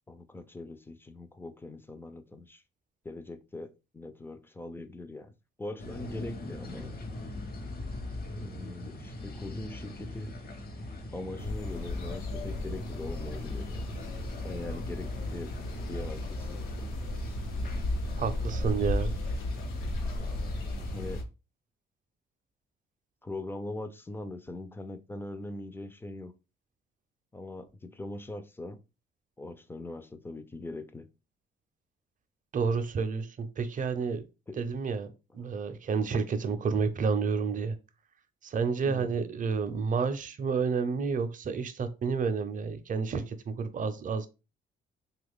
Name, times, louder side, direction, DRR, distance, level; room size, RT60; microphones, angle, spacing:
voice 1, 0.1-2.6 3.0-5.3 5.6-7.0 8.4-10.4 11.1-13.9 14.4-15.5 15.9-16.9 20.2-20.4 20.9-21.2 23.2-26.3 27.3-28.8 29.4-31.1 34.5-34.6 38.8-39.1, left 2 dB, 10° left, 0.4 m, -41 dB
sound 1, 5.8-21.2, left 1 dB, 50° left, 0.9 m, -41 dB
sound 2, 11.4-21.2, left 2 dB, 85° left, 0.8 m, -35 dB
voice 2, 18.2-19.1 32.5-34.2 34.6-37.8 38.4-44.3, right 5 dB, 40° right, 0.6 m, -30 dB
3.0 x 2.4 x 3.5 m
cardioid pair, 90°, 20 cm